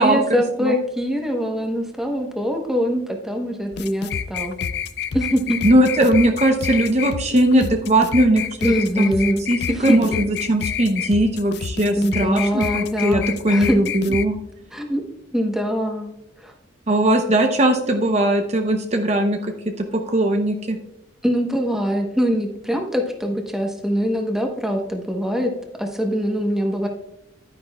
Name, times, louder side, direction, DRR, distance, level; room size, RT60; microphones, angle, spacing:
voice 1, 0.0-4.6 5.1-5.6 8.6-10.2 12.0-13.8 14.7-15.0 15.3-16.1 16.4-16.5 21.2-25.5 25.8-26.9, equal, ahead, 2 dB, 1.0 m, -23 dB
sound 1, 3.7-14.3, left 7 dB, 55° left, 0.4 m, -28 dB
voice 2, 5.6-8.5 9.0-9.1 9.5-14.4 16.9-20.8, right 1 dB, 35° right, 4 dB, 0.7 m, -19 dB
11.0 x 9.8 x 2.3 m, 0.87 s
head